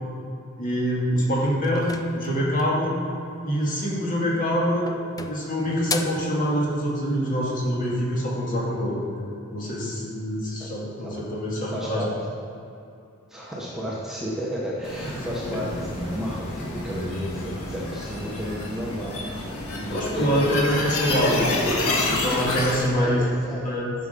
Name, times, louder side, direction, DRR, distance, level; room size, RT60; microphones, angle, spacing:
voice 1, 0.6-3.0 3.4-4.9 5.3-9.0 9.5-12.0 15.4-15.5 19.9-23.2 23.6-23.9, equal, 40° left, -4 dB, 2.2 m, -25 dB
sound 1, 1.6-2.9 4.1-4.5 4.9-6.3, left 5 dB, 15° left, 0.3 m, -35 dB
voice 2, 11.7-12.1 13.3-20.5 21.0-21.5 22.8-23.6, equal, ahead, -6 dB, 1.1 m, -32 dB
sound 2, 14.8-22.9, left 2 dB, 75° left, 1.7 m, -29 dB
10.5 x 6.2 x 5.3 m, 2.6 s
head